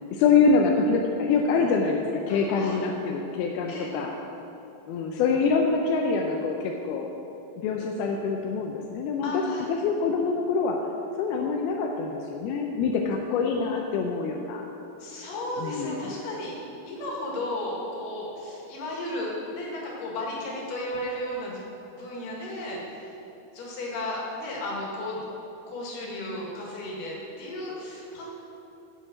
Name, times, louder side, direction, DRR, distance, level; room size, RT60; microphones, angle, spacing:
voice 1, 0.1-4.1 4.9-7.1 7.6-9.4 9.7-10.8 11.2-14.6 15.6-16.1, left 4 dB, 85° left, 1 dB, 2.6 m, -25 dB
voice 2, 2.3-2.8 3.7-3.9 9.2-9.7 15.0-16.6 16.9-21.6 21.9-23.2 23.5-25.2 25.7-28.3, left 1 dB, 65° left, -3 dB, 3.6 m, -34 dB
9.8 x 7.3 x 7.7 m, 3.0 s
omnidirectional pair, 4.3 m